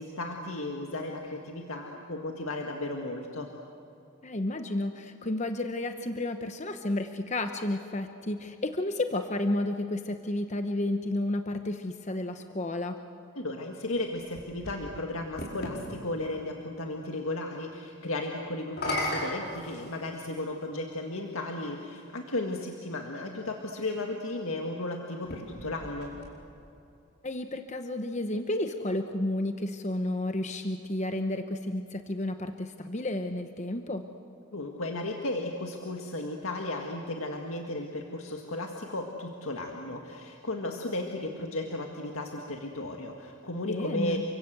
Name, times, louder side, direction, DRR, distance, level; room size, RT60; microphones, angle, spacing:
voice 1, 0.0-3.5 13.3-26.1 34.5-44.2, left 2 dB, 85° left, 2 dB, 1.9 m, -35 dB
voice 2, 4.2-13.0 27.2-34.0 43.7-44.2, left 1 dB, 35° left, 7 dB, 0.9 m, -31 dB
sound 1, 13.9-15.8 18.6-20.4 21.3-21.4 25.1-26.7, left 1 dB, 50° left, 5.1 m, -36 dB
29.5 x 24.5 x 8.0 m, 2.7 s
head